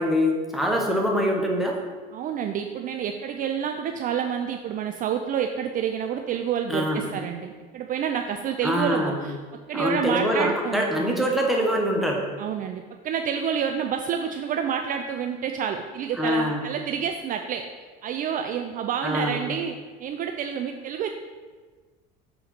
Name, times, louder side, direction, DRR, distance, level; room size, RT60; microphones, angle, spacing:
voice 1, 0.0-1.8 6.7-7.1 8.6-9.3 9.7-12.2 16.2-16.6 19.0-19.4, equal, ahead, -1 dB, 1.2 m, -24 dB
voice 2, 2.1-9.4 9.7-11.2 12.4-17.7 18.0-21.1, right 8 dB, 40° right, 5 dB, 0.4 m, -28 dB
6.6 x 3.8 x 4.3 m, 1.4 s
supercardioid pair, 100°, 21 cm